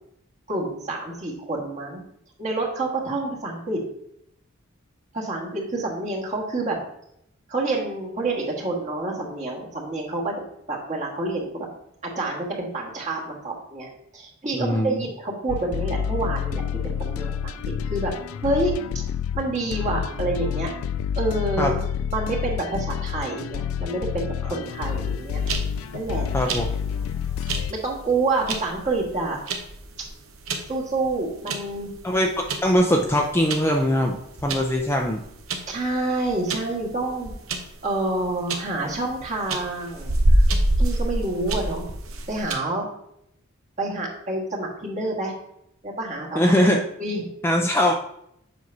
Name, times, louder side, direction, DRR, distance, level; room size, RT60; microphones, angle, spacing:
voice 1, 0.5-2.0 2.4-3.8 5.1-6.8 7.5-10.3 10.7-11.7 12.0-17.6 17.9-18.1 18.4-19.0 19.3-20.7 21.2-21.8 22.1-25.4 25.9-26.3 27.7-29.4 30.0-30.1 30.7-31.9 35.7-37.3 37.8-40.5 40.8-41.9 42.3-42.9 43.8-45.3 45.8-46.6 47.0-47.3, right 2 dB, 35° right, -2 dB, 1.6 m, -28 dB
voice 2, 14.5-15.0 21.6-21.7 26.3-26.7 32.0-34.2 34.4-35.2 46.3-46.8 47.4-47.9, equal, 10° left, 1 dB, 0.4 m, -21 dB
sound 1, 15.5-27.7, left 8 dB, 90° left, 0.3 m, -29 dB
sound 2, 25.0-42.5, right 1 dB, 85° right, 0.8 m, -27 dB
7.6 x 5.6 x 2.7 m, 0.75 s
head